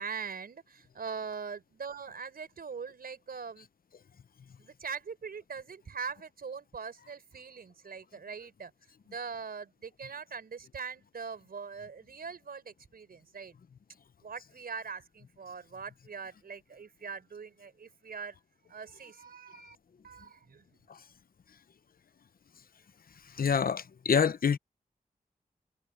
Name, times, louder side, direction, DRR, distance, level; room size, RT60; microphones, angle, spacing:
voice 1, 0.0-3.7 4.6-8.7 9.0-13.6 14.2-18.4 18.7-19.8 20.0-20.6, right 5 dB, 85° right, 4.8 m, -42 dB
voice 2, 23.4-24.6, left 6 dB, 75° left, 0.8 m, -26 dB
cardioid pair, 55°, 15 cm